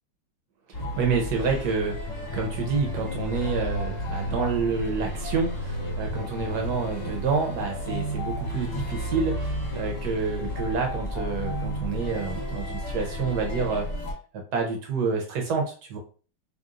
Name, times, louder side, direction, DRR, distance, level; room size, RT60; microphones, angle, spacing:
sound 1, 0.7-14.1, equal, 30° left, 0.8 m, -33 dB
voice 1, 1.0-2.0 2.3-13.9 14.3-16.0, right 4 dB, 55° right, 2 dB, 1.3 m, -28 dB
sound 2, 2.1-8.4, equal, 70° left, 1.0 m, -37 dB
3.4 x 2.6 x 3.8 m, 0.38 s
omnidirectional pair, 2.4 m